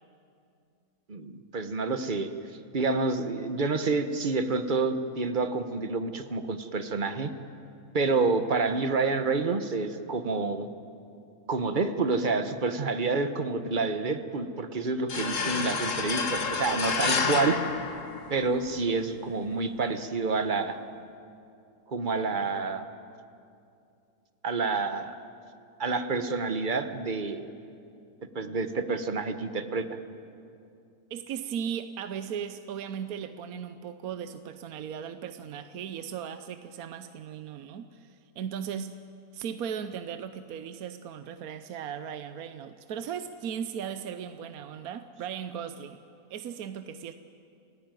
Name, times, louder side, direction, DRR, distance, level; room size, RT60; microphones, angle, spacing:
voice 1, 1.1-2.3 2.7-7.3 7.9-10.7 11.5-17.6 18.3-20.8 21.9-22.9 24.4-25.2 25.8-27.4 28.3-29.9, right 4 dB, 35° right, 9 dB, 1.1 m, -28 dB
sound 1, 15.1-18.7, left 5 dB, 55° left, 1.8 m, -29 dB
voice 2, 31.1-39.0 39.3-46.0 46.3-47.1, right 8 dB, 70° right, 10 dB, 1.2 m, -37 dB
29.0 x 15.5 x 9.2 m, 2.6 s
omnidirectional pair, 1.6 m